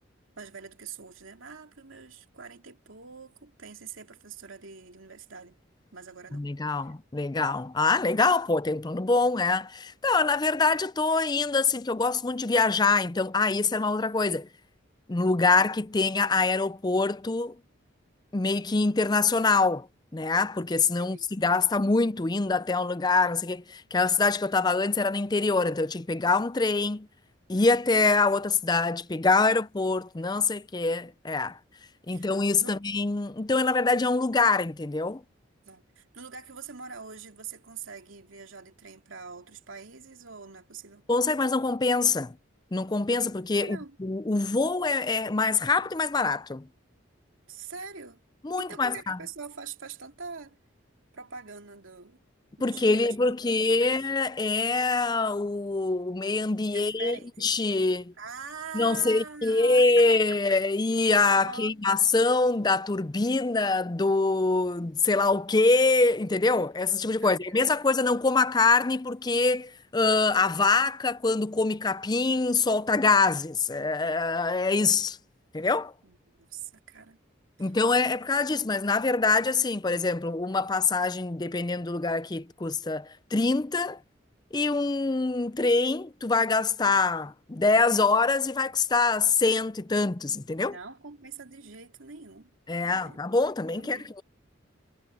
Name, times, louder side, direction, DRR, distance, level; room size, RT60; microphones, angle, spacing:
voice 1, 0.4-5.6 5.9-6.5 6.8-6.9 21.0-21.3 32.1-32.3 32.6-32.8 35.6-41.1 43.6-44.0 47.5-48.2 48.6-50.6 51.1-52.2 52.6-54.1 56.7-57.5 58.2-60.1 61.4-61.7 67.2-67.8 76.0-77.2 77.6-77.7 78.5-78.6 90.6-92.5 92.8-94.1, right 5 dB, 85° right, 2.6 m, -44 dB
voice 2, 6.3-14.5 15.1-17.6 18.3-19.9 20.1-27.1 27.5-31.6 32.1-35.2 41.1-42.3 42.7-46.7 48.4-49.2 52.6-58.1 58.7-75.2 75.5-75.9 77.6-84.0 84.5-90.8 92.7-94.2, left 3 dB, 20° left, 0.5 m, -25 dB
head